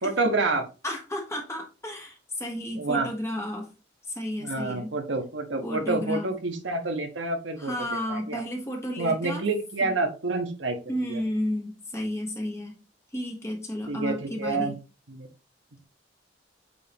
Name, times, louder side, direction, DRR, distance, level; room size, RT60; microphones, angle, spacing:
voice 1, 0.0-0.6 2.7-3.1 4.4-8.4 9.0-11.2 13.9-14.7 15.1-15.3, right 3 dB, 85° right, 5 dB, 1.3 m, -28 dB
voice 2, 0.8-3.7 4.1-4.9 5.6-6.3 7.6-9.4 9.8-9.9 10.9-12.8 13.1-14.7, left 1 dB, 15° left, 1 dB, 1.2 m, -32 dB
8.2 x 3.8 x 3.0 m, 0.32 s
head